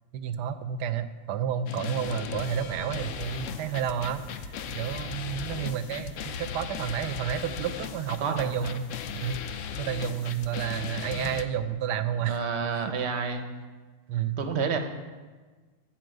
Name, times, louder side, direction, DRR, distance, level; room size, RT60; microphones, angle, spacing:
voice 1, 0.1-4.2 4.7-9.4 9.8-12.4 12.8-12.9 14.1-14.4, right 9 dB, 75° right, 12 dB, 1.1 m, -31 dB
sound 1, 1.7-11.4, left 7 dB, 90° left, 0.6 m, -37 dB
sound 2, 2.0-8.6, left 2 dB, 55° left, 1.2 m, -47 dB
voice 2, 8.2-8.8 12.2-13.5 14.4-14.8, right 5 dB, 55° right, 6 dB, 0.8 m, -29 dB
12.5 x 4.3 x 7.9 m, 1.4 s
omnidirectional pair, 2.0 m